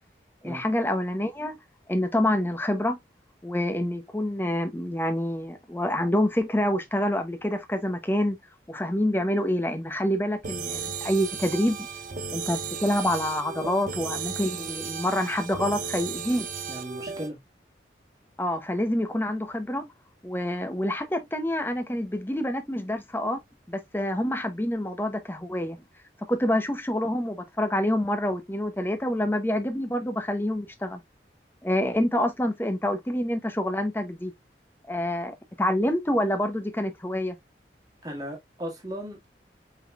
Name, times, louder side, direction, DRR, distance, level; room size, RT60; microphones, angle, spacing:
voice 1, 0.4-1.6 1.9-3.0 3.4-8.4 8.7-11.8 12.3-16.5 18.4-19.9 20.2-23.4 23.7-25.8 26.3-31.0 31.6-34.3 34.9-37.4, left 1 dB, 10° left, 0.7 m, -27 dB
sound 1, 10.4-17.3, right 5 dB, 50° right, 0.7 m, -35 dB
voice 2, 16.7-17.4 38.0-39.3, equal, 20° right, 1.6 m, -36 dB
5.2 x 3.9 x 2.3 m
head